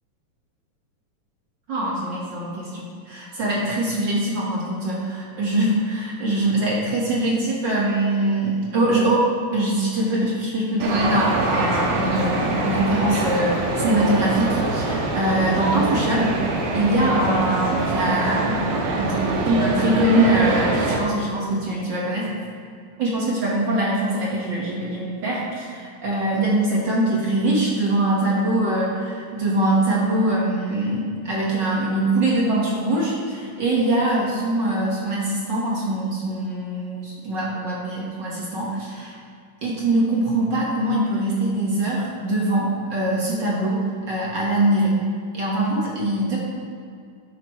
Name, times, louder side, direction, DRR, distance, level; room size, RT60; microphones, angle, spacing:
voice 1, 1.7-9.3 9.5-16.4 16.7-18.7 18.9-22.3 23.0-39.1 39.6-43.8 44.1-45.0 45.3-46.4, right 1 dB, 45° right, -5 dB, 1.6 m, -23 dB
sound 1, 10.8-21.0, right 2 dB, 85° right, 2.9 m, -24 dB
12.0 x 9.6 x 3.2 m, 2.4 s
omnidirectional pair, 3.9 m